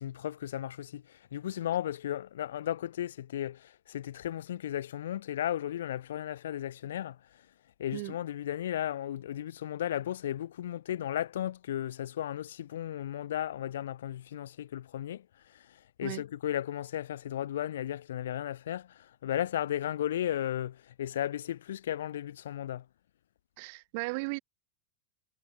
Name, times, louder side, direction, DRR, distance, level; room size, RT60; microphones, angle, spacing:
voice 1, 0.0-7.2 7.8-22.9, left 11 dB, 90° left, 0.8 m, -35 dB
voice 2, 23.6-24.4, right 29 dB, 55° right, 2.0 m, -36 dB
supercardioid pair, 135°, 0 cm